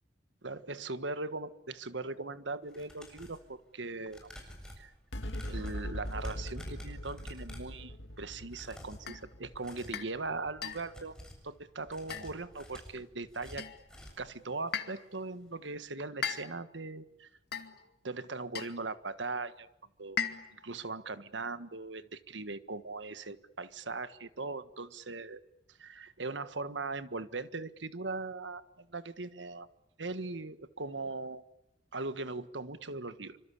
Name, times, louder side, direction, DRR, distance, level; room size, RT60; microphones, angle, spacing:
voice 1, 0.4-4.3 4.8-4.9 5.5-11.1 11.4-13.7 14.2-17.3 18.0-19.7 20.0-20.2 20.5-25.4 25.8-29.7 30.0-31.4 31.9-33.4, right 3 dB, 85° right, 12 dB, 1.6 m, -40 dB
sound 1, 2.6-3.5 4.1-7.8 8.4-9.1 9.5-10.0 10.5-11.5 11.8-14.3 14.7-14.8 15.2-15.3, equal, 5° left, 7.5 m, -50 dB
sound 2, 5.1-11.8, equal, 75° left, 2.3 m, -42 dB
sound 3, 9.1-9.3 9.9-10.2 10.6-11.0 12.1-12.6 13.6-13.9 14.7-15.1 16.2-16.7 17.5-17.9 18.5-18.8 20.2-20.7, left 7 dB, 60° left, 2.3 m, -38 dB
27.0 x 25.5 x 8.5 m, 0.84 s
head